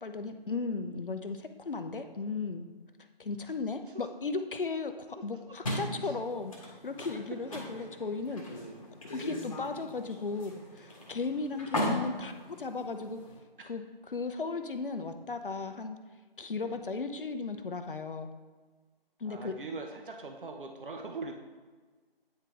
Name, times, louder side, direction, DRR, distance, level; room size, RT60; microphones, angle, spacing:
voice 1, 0.0-2.7 3.2-8.4 9.1-13.2 13.6-15.9 16.4-18.3 19.2-19.5, left 4 dB, 60° left, 7 dB, 0.6 m, -36 dB
sound 1, 5.6-13.4, left 1 dB, 35° left, 1.1 m, -38 dB
voice 2, 19.2-21.3, right 3 dB, 60° right, 3 dB, 0.8 m, -42 dB
9.0 x 3.4 x 3.4 m, 1.4 s
figure-of-eight pair, 160°, 30 cm